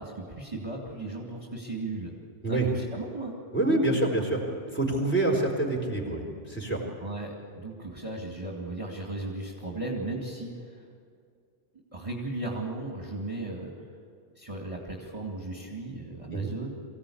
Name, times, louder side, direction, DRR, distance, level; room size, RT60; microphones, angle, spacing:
voice 1, 0.0-2.1 2.5-3.4 7.0-10.8 11.9-13.7 14.4-16.7, right 2 dB, 30° right, -1 dB, 2.3 m, -36 dB
voice 2, 3.5-4.4 4.7-6.8 16.3-16.5, right 2 dB, 10° left, -2 dB, 3.9 m, -26 dB
23.5 x 16.0 x 8.6 m, 2.2 s
omnidirectional pair, 1.2 m